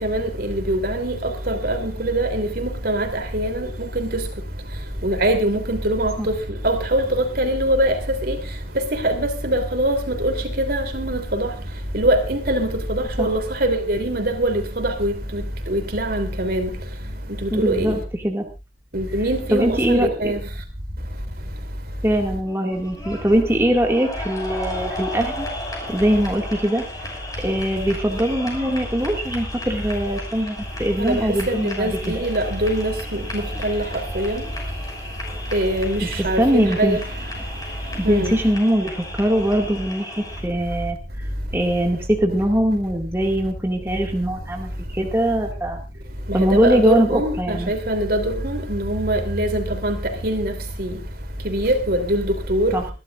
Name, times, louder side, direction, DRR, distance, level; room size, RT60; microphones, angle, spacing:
voice 1, 0.0-4.2 5.0-6.1 6.6-8.4 8.9-11.5 11.9-15.4 15.7-16.7 17.4-17.9 18.9-20.4 31.0-31.2 31.5-33.8 34.1-34.4 35.5-37.0 38.0-38.3 46.3-50.0 50.2-50.5 50.8-50.9 51.4-52.7, right 1 dB, 60° right, 3.3 m, -23 dB
voice 2, 17.5-18.5 19.5-20.3 22.0-25.5 25.9-26.8 27.4-32.2 36.0-36.1 36.3-37.0 38.0-41.3 41.5-45.8 46.3-47.7 52.7-52.8, right 1 dB, 15° right, 2.1 m, -22 dB
sound 1, 22.5-40.4, left 1 dB, 20° left, 5.9 m, -35 dB
26.0 x 12.5 x 2.5 m
head